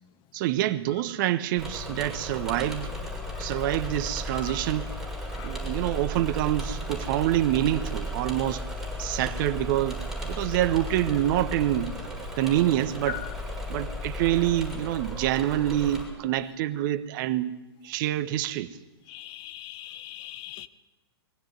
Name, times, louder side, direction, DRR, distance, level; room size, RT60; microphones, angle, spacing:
voice 1, 0.3-2.9 3.4-4.9 5.4-8.6 9.0-11.9 12.4-13.2 13.7-17.5 17.8-18.7, right 13 dB, 50° right, 1.2 m, -26 dB
Engine / Mechanisms, 1.6-16.0, equal, 5° right, 6.6 m, -35 dB
voice 2, 19.1-20.7, left 13 dB, 35° left, 1.1 m, -41 dB
22.5 x 16.0 x 9.6 m
hypercardioid pair, 105°, 14 cm